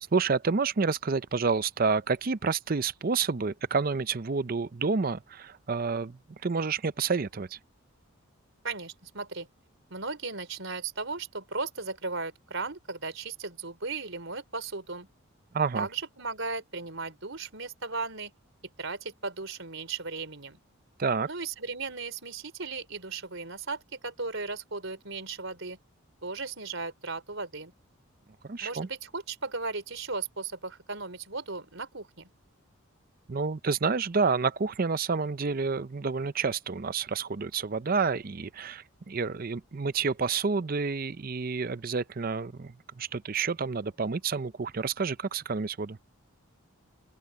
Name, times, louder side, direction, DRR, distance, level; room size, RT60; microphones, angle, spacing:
voice 1, 0.1-7.6 15.5-15.9 21.0-21.3 28.4-28.9 33.3-46.0, right 4 dB, 40° right, 0.5 m, -29 dB
voice 2, 8.6-9.5 9.9-15.1 15.7-18.3 18.8-20.6 21.3-25.8 26.2-27.7 28.6-32.3, right 4 dB, 60° right, 4.4 m, -36 dB
open air
head